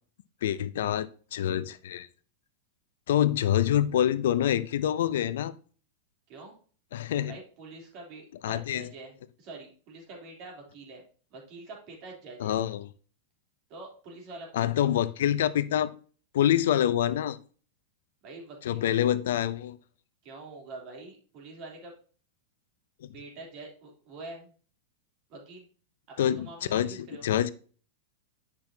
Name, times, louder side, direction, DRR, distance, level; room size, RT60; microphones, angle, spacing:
voice 1, 0.4-2.1 3.1-5.5 6.9-7.3 8.4-8.8 12.4-12.9 14.5-15.9 16.3-17.4 18.7-19.8 23.0-23.1 26.2-26.9 27.2-27.5, left 11 dB, 75° left, 15 dB, 0.5 m, -26 dB
voice 2, 7.3-11.0 11.3-12.6 13.7-14.7 18.2-19.0 20.2-21.9 23.1-24.5 25.3-25.7 26.1-27.3, right 2 dB, 50° right, 0 dB, 3.2 m, -45 dB
8.5 x 6.0 x 2.8 m, 0.41 s
hypercardioid pair, 120°, 0 cm